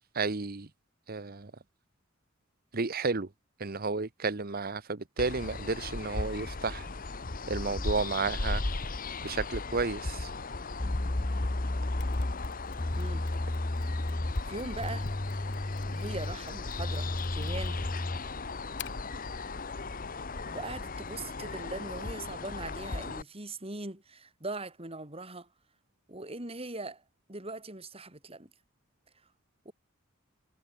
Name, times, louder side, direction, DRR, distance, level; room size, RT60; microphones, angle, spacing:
voice 1, 0.1-0.7 1.1-1.5 2.7-3.3 3.6-6.9 7.5-8.6 9.2-10.3, right 4 dB, 50° right, 1.1 m, -32 dB
sound 1, 5.2-23.2, left 3 dB, 45° left, 1.2 m, -37 dB
sound 2, 10.8-18.3, left 1 dB, 25° left, 0.7 m, -33 dB
Mechanisms, 12.0-19.2, left 11 dB, 60° left, 6.5 m, -52 dB
voice 2, 12.9-13.3 14.0-14.1 14.5-15.1 15.9-17.8 20.4-25.5 26.1-27.0 27.3-28.5 29.6-29.7, right 2 dB, 30° right, 5.0 m, -40 dB
head